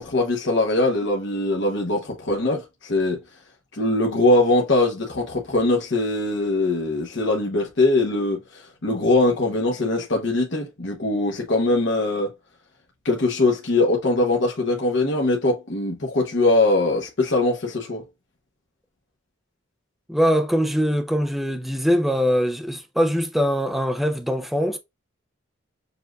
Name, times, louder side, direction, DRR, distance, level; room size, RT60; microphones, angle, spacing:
voice 1, 0.0-3.2 3.7-12.3 13.0-18.1, left 2 dB, 60° left, 0.9 m, -22 dB
voice 2, 20.1-24.8, equal, ahead, 0.4 m, -22 dB
6.8 x 2.5 x 2.3 m
head